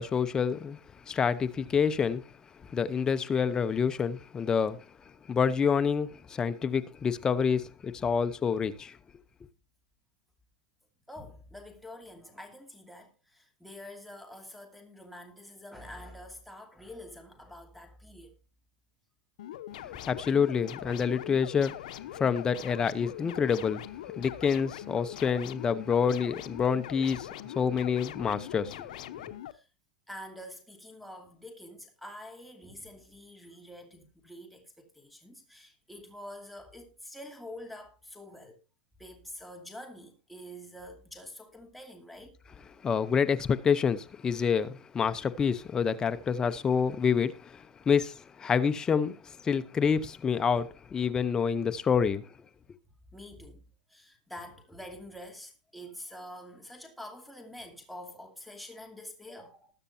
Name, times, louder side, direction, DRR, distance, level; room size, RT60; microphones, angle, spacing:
voice 1, 0.0-2.2 2.6-4.8 5.3-9.0 19.8-29.3 42.8-52.3, left 6 dB, 15° left, 0.8 m, -28 dB
voice 2, 11.1-18.4 29.5-29.7 30.1-38.6 39.0-42.4 53.1-53.6 53.9-59.7, left 1 dB, ahead, 2.6 m, -46 dB
sound 1, 19.4-29.5, left 12 dB, 75° left, 0.9 m, -42 dB
20.5 x 6.8 x 2.8 m
supercardioid pair, 150°, 4 cm